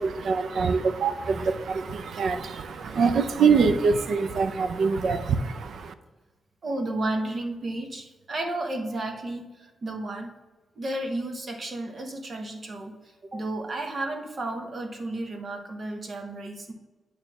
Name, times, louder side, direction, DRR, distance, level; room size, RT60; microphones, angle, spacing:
voice 1, 0.0-5.9, right 5 dB, 60° right, 11 dB, 0.5 m, -24 dB
voice 2, 6.6-9.4 9.8-10.3 10.8-12.9 13.3-16.7, right 2 dB, 35° right, 4 dB, 0.9 m, -32 dB
8.9 x 3.2 x 6.0 m, 1.2 s
wide cardioid pair, 165°, 0 cm